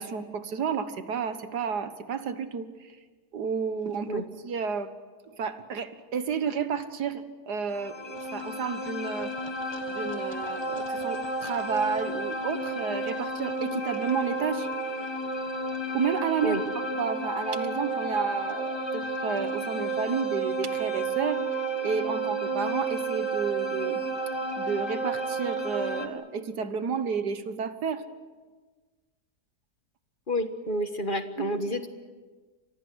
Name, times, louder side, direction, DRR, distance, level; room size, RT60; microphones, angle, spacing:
voice 1, 0.0-2.7 3.3-4.9 5.4-9.3 9.9-14.7 15.9-16.6 17.0-21.4 21.8-24.0 24.6-28.0 31.4-31.5, right 6 dB, 85° right, 10 dB, 1.9 m, -31 dB
sound 1, 7.7-26.1, right 2 dB, 15° left, 1.7 m, -31 dB
voice 2, 30.3-31.9, equal, 35° left, 8 dB, 1.6 m, -29 dB
30.0 x 24.0 x 6.3 m, 1.4 s
omnidirectional pair, 1.7 m